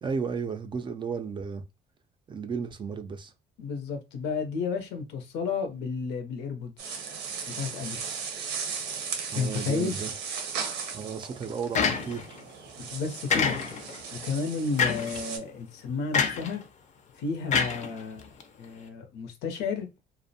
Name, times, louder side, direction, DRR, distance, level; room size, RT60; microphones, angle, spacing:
voice 1, 0.0-1.6 2.3-3.3 9.3-10.1 10.9-12.4, right 6 dB, 30° right, 0.4 m, -33 dB
voice 2, 3.6-6.9 7.5-8.0 9.4-10.0 12.8-13.7 14.1-16.6 17.2-18.3 18.6-19.9, left 5 dB, 85° left, 0.6 m, -32 dB
sound 1, 6.8-15.4, right 6 dB, 85° right, 0.6 m, -37 dB
sound 2, 11.7-12.4 13.3-14.0 14.8-15.2 16.1-16.5 17.5-18.4, left 6 dB, 45° left, 0.5 m, -26 dB
2.4 x 2.0 x 2.6 m
cardioid pair, 110°, 17 cm